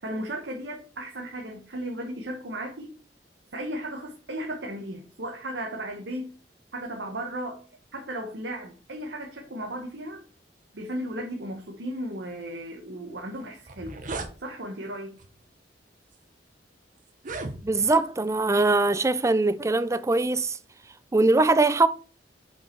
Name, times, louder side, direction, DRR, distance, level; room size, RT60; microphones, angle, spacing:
voice 1, 0.0-2.9 3.5-6.3 6.7-7.6 7.9-10.2 10.7-14.0 14.4-15.2, right 1 dB, 75° right, 1.1 m, -35 dB
sound 1, 13.2-13.3 13.6-14.3 15.2-15.4 16.1-16.2 17.1-18.0, right 3 dB, 50° right, 0.9 m, -36 dB
voice 2, 17.6-20.6 21.1-21.9, right 3 dB, 15° right, 0.4 m, -22 dB
5.6 x 5.6 x 4.4 m
head